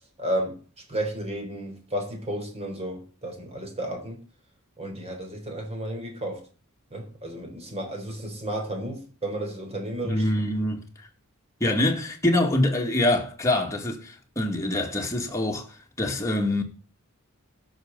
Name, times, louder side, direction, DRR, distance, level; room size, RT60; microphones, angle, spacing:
voice 1, 0.2-0.6 0.9-4.2 4.8-6.4 6.9-10.2, right 1 dB, 30° right, 3.9 m, -32 dB
voice 2, 10.0-10.8 11.6-16.6, left 1 dB, 15° left, 2.2 m, -25 dB
17.5 x 6.7 x 4.0 m
head